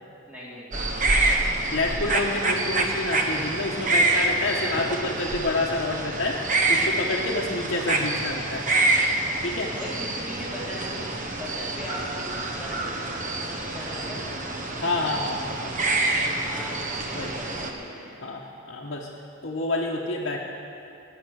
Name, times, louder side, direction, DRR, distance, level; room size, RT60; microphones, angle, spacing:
voice 1, 0.3-1.0 9.7-11.0 11.3-14.4 16.4-18.2, equal, 5° right, -7 dB, 2.7 m, -39 dB
sound 1, 0.7-17.7, right 2 dB, 35° right, 0.9 m, -26 dB
voice 2, 1.7-6.4 6.7-8.6 9.4-9.7 14.8-15.7 17.1-17.3 18.2-19.1 19.4-20.4, left 2 dB, 50° left, -4 dB, 1.1 m, -28 dB
20.0 x 6.9 x 6.4 m, 2.7 s
head